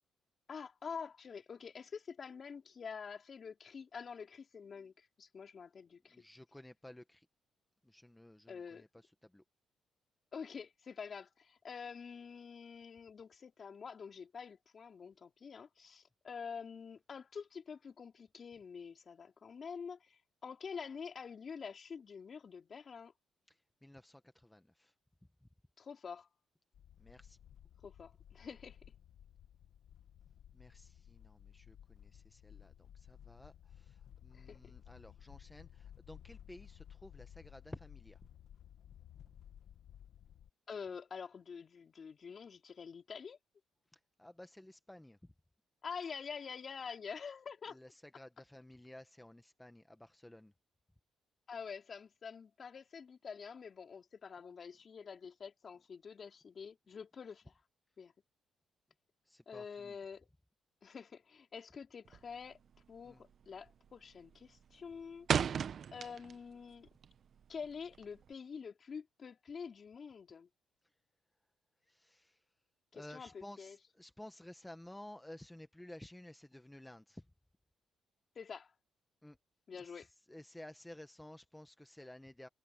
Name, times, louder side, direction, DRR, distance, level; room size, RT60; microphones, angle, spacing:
voice 1, 0.5-6.2 8.5-8.8 10.3-23.1 25.8-26.3 27.8-28.8 34.3-34.7 40.7-43.4 45.8-47.8 51.5-57.5 58.0-58.1 59.5-60.3 60.8-62.6 62.9-65.3 65.9-66.9 67.5-70.5 72.9-73.8 78.4-78.7 79.7-80.1, left 6 dB, 45° left, 4.3 m, -47 dB
voice 2, 6.1-7.3 7.8-8.9 9.2-9.4 23.5-24.9 27.0-27.4 30.5-38.2 43.9-45.2 47.7-50.5 59.3-60.0 63.0-63.2 71.9-72.4 72.9-77.2 79.2-79.4 79.8-80.0 80.3-82.5, left 1 dB, 10° left, 1.3 m, -54 dB
sound 1, 26.7-40.5, left 10 dB, 70° left, 2.1 m, -57 dB
sound 2, 62.1-62.5 62.7-63.1 63.4-63.9 64.2-66.5 66.9-68.3, right 7 dB, 55° right, 1.1 m, -35 dB
cardioid pair, 90°, 0 cm